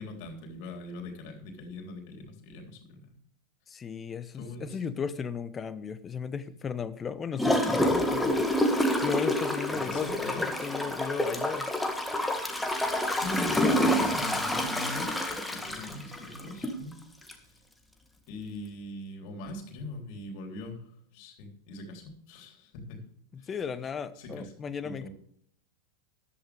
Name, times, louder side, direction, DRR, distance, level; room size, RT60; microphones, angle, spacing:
voice 1, 0.0-3.1 4.3-4.8 9.7-10.4 13.1-15.1 15.5-16.9 17.3-17.6 18.3-20.9 21.1-23.1 23.4-23.7 24.2-24.5 24.8-25.1, left 1 dB, 45° left, 3 dB, 3.6 m, -41 dB
voice 2, 3.7-8.5 9.0-11.7 23.3-25.1, left 6 dB, 20° left, 14 dB, 0.9 m, -35 dB
Gurgling / Toilet flush, 7.4-16.8 17.3-17.4, left 1 dB, 5° left, 1.8 m, -28 dB
14.0 x 11.5 x 3.4 m, 0.64 s
figure-of-eight pair, 90°, 0 cm